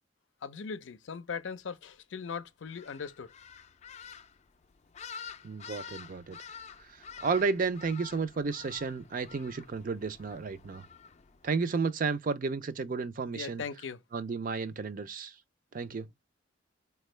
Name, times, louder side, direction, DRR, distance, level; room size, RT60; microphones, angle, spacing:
voice 1, 0.4-3.3 13.3-14.0, left 6 dB, 90° left, 0.5 m, -39 dB
sound 1, 2.6-11.7, left 7 dB, 35° left, 0.4 m, -49 dB
voice 2, 5.4-6.4 7.2-10.8 11.4-13.6 14.1-15.3 15.7-16.1, right 4 dB, 45° right, 0.4 m, -32 dB
4.3 x 2.2 x 3.1 m
head